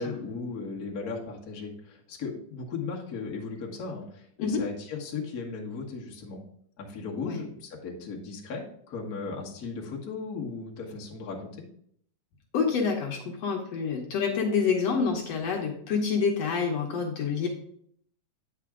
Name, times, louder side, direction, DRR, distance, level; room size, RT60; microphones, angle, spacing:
voice 1, 0.0-6.4 6.8-11.5, left 4 dB, 40° left, -2 dB, 1.4 m, -36 dB
voice 2, 12.5-17.5, left 5 dB, 65° left, 0 dB, 1.9 m, -27 dB
8.9 x 6.0 x 3.6 m, 0.66 s
omnidirectional pair, 3.4 m